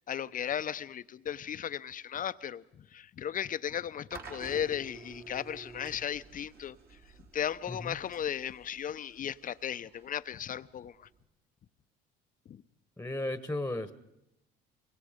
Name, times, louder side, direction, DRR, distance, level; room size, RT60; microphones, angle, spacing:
voice 1, 0.0-7.0 7.3-11.1 12.5-12.6, left 9 dB, 40° left, 0.7 m, -36 dB
sound 1, 4.1-11.2, right 4 dB, 50° right, 3.7 m, -51 dB
voice 2, 13.0-13.9, left 2 dB, 10° left, 1.3 m, -35 dB
24.5 x 22.5 x 5.1 m
supercardioid pair, 75°, 20 cm